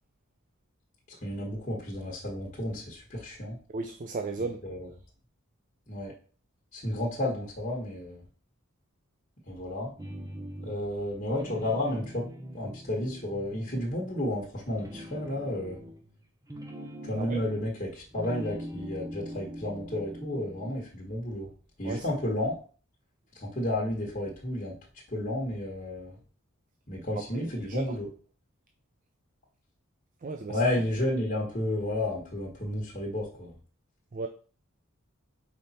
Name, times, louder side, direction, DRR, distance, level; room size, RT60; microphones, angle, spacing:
voice 1, 1.1-3.6 4.6-4.9 5.9-6.1 6.7-8.2 9.5-9.9 10.6-12.3 12.5-15.8 17.0-21.5 21.8-22.6 23.3-24.7 25.1-26.2 26.9-28.1 30.5-33.6, left 1 dB, 35° left, 1.5 m, -32 dB
voice 2, 3.7-4.6 17.2-17.4 21.8-22.0 27.4-28.0 30.2-30.6 34.1-34.3, right 3 dB, 40° right, 0.4 m, -35 dB
sound 1, 10.0-11.0 11.3-14.3 14.7-17.8 18.1-20.8, equal, 15° right, 0.9 m, -42 dB
5.2 x 4.2 x 4.3 m
head